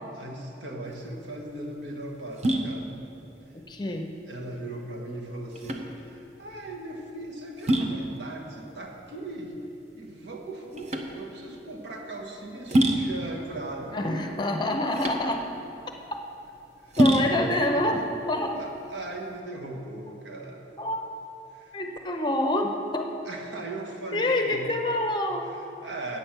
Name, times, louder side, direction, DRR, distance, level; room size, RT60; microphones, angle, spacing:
voice 1, 0.1-2.9 4.3-9.6 9.9-14.4 16.8-17.7 18.5-20.7 21.5-21.8 23.2-24.7 25.5-26.2, right 1 dB, 80° right, 0 dB, 1.3 m, -38 dB
sound 1, 0.8-19.4, right 1 dB, 40° right, 0.7 m, -29 dB
voice 2, 3.5-4.1 13.9-15.4 16.1-16.2 17.0-18.6 20.8-21.1 21.7-23.1 24.1-25.5, left 1 dB, 25° left, 4 dB, 0.7 m, -27 dB
8.8 x 8.5 x 5.9 m, 2.8 s
head